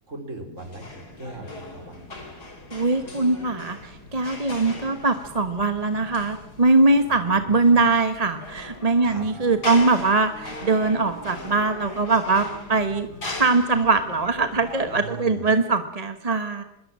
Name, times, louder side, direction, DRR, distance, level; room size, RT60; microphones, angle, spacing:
voice 1, 0.1-2.1 7.1-7.8 9.0-9.2 14.9-15.5, right 1 dB, 50° right, 5 dB, 4.7 m, -39 dB
sound 1, 0.6-15.0, left 2 dB, 75° left, 5.1 m, -39 dB
voice 2, 2.7-13.1 13.4-16.6, right 3 dB, 25° right, 8 dB, 1.4 m, -21 dB
Wind instrument woodwind instrument, 6.9-8.0 8.3-8.5 8.8-14.1, right 1 dB, 20° left, 5.9 m, -46 dB
25.0 x 22.0 x 7.6 m, 0.81 s
omnidirectional pair, 1.7 m